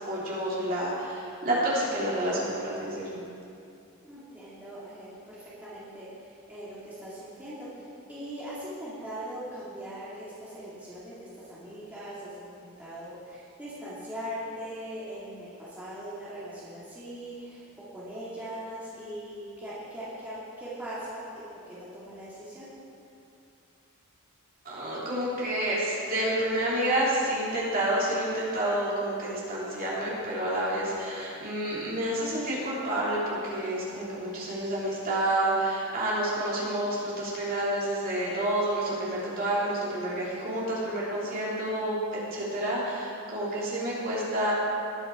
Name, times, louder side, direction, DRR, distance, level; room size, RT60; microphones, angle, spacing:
voice 1, 0.1-3.2 24.6-44.5, right 1 dB, 40° right, -7 dB, 3.2 m, -29 dB
voice 2, 4.0-17.6 17.9-22.7, equal, 5° right, -10 dB, 2.1 m, -40 dB
19.5 x 7.1 x 4.9 m, 2.6 s
head